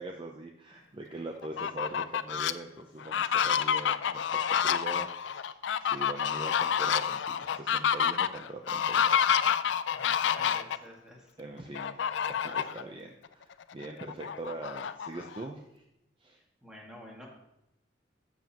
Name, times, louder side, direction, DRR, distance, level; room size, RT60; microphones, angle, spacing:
voice 1, 0.0-9.4 11.4-15.8 16.2-16.4, right 2 dB, 30° right, 2 dB, 0.6 m, -42 dB
Fowl, 1.4-2.5 3.0-10.8 11.7-12.8 13.2-13.3 13.7-15.4, left 8 dB, 75° left, 0.4 m, -28 dB
voice 2, 9.9-11.3 16.6-17.3, equal, 5° right, -3 dB, 2.1 m, -50 dB
13.0 x 7.3 x 3.0 m, 0.85 s
head